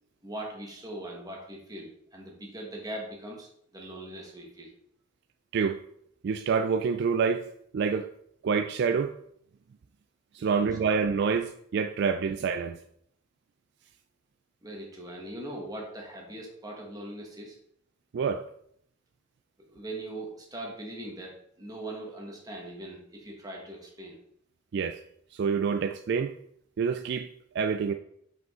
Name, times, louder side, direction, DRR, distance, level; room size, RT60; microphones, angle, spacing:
voice 1, 0.2-4.7 10.4-10.6 14.6-17.6 19.6-24.2, right 1 dB, 20° right, -1 dB, 1.4 m, -41 dB
voice 2, 6.2-7.4 7.7-8.1 8.4-9.1 10.3-12.8 18.1-18.4 24.7-25.0 25.3-26.3 26.8-27.3 27.5-27.9, right 5 dB, 55° right, 8 dB, 0.3 m, -27 dB
5.6 x 5.1 x 3.7 m, 0.69 s
head